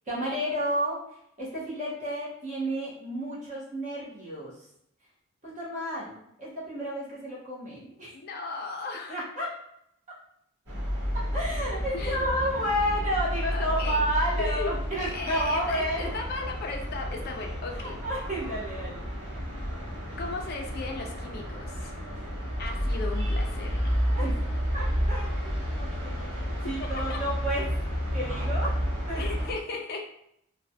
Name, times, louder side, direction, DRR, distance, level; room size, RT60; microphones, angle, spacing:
voice 1, 0.1-1.0 1.4-4.5 5.4-8.1 9.1-9.5 11.3-16.1 17.7-19.0 24.0-24.3 24.7-27.7 28.1-28.7 29.1-29.5, equal, 35° right, -7 dB, 1.0 m, -31 dB
voice 2, 8.1-9.2 11.9-12.3 13.5-14.0 14.4-18.0 20.2-21.9 22.6-23.9 26.8-27.2 29.1-30.1, left 3 dB, 45° left, 1 dB, 0.4 m, -36 dB
sound 1, 10.7-29.5, equal, 60° right, 1.1 m, -31 dB
3.1 x 2.2 x 2.7 m, 0.75 s
head